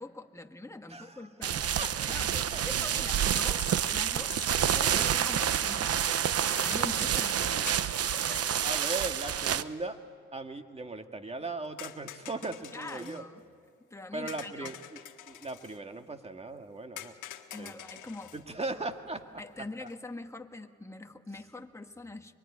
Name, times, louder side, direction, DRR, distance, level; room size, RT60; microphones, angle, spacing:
voice 1, 0.0-4.4 4.7-8.6 12.7-13.4 13.8-14.7 17.5-18.3 19.4-22.3, left 2 dB, 10° left, 5 dB, 1.7 m, -43 dB
voice 2, 0.9-1.3 1.8-2.1 2.5-2.6 8.6-10.0 10.3-13.2 14.1-15.0 15.3-17.1 17.6-17.7 18.3-19.2 19.8-19.9, right 3 dB, 20° right, 6 dB, 2.0 m, -38 dB
sound 1, 1.4-9.6, right 9 dB, 50° right, 0.9 m, -28 dB
sound 2, 6.5-6.8 7.3-7.9 8.3-8.4 9.5-9.6 14.5-14.6, left 9 dB, 60° left, 2.2 m, -43 dB
sound 3, 11.8-13.3 14.3-15.8 17.0-18.5 19.8-20.0, left 12 dB, 80° left, 1.6 m, -47 dB
24.5 x 24.0 x 10.0 m, 2.1 s
cardioid pair, 90°, 30 cm